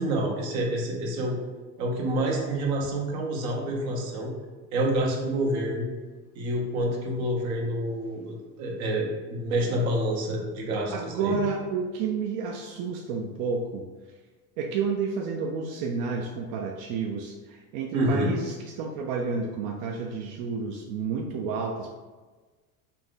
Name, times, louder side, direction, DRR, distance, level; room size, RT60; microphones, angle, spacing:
voice 1, 0.0-1.4 1.8-4.3 4.7-5.9 6.3-11.4 17.9-18.3, right 1 dB, 85° right, -1 dB, 1.2 m, -28 dB
voice 2, 10.9-13.8 14.6-22.0, right 5 dB, 65° right, 2 dB, 0.5 m, -30 dB
4.2 x 2.5 x 3.7 m, 1.3 s
supercardioid pair, 105°, 42 cm